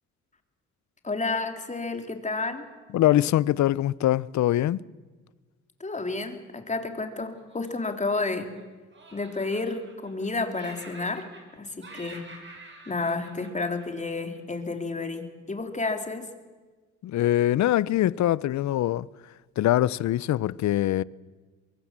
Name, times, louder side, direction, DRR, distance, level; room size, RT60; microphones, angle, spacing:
voice 1, 1.0-2.7 5.8-8.5 9.1-11.2 11.5-12.2 12.9-16.3, left 3 dB, 25° left, 3.3 m, -31 dB
voice 2, 2.9-4.8 17.0-19.1 19.6-21.0, left 13 dB, 65° left, 0.7 m, -23 dB
Laughter, 7.4-8.6 8.9-10.3 10.5-11.6 11.8-14.4, right 2 dB, 40° right, 7.2 m, -47 dB
23.5 x 23.0 x 7.5 m
cardioid pair, 90°, 30 cm